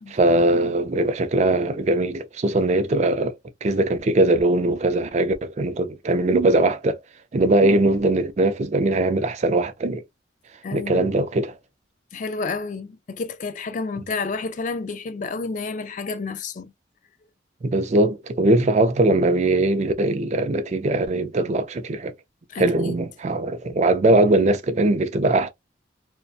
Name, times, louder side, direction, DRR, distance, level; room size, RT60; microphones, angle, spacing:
voice 1, 0.1-3.3 3.6-7.0 7.3-10.0 10.7-11.5 17.6-22.1 22.6-25.5, right 2 dB, 35° right, 0.3 m, -20 dB
voice 2, 10.6-11.0 12.1-16.7 22.5-22.9, left 4 dB, 40° left, 0.3 m, -30 dB
2.6 x 2.2 x 2.2 m
head